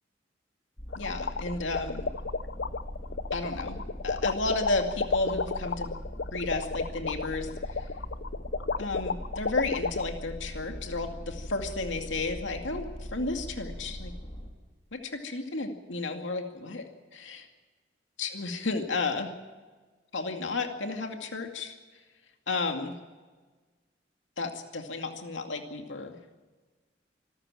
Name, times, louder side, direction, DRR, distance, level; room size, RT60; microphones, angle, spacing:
sound 1, 0.8-14.5, equal, 25° left, 3.7 m, -41 dB
voice 1, 0.9-2.1 3.3-5.9 6.3-7.9 8.8-14.1 14.9-16.8 17.1-17.5 18.2-19.3 20.1-21.7 22.5-22.9 24.4-26.1, left 3 dB, 90° left, 4 dB, 2.4 m, -32 dB
sound 2, 0.9-10.0, left 4 dB, 65° left, 0.7 m, -31 dB
26.5 x 14.0 x 7.6 m, 1.3 s
head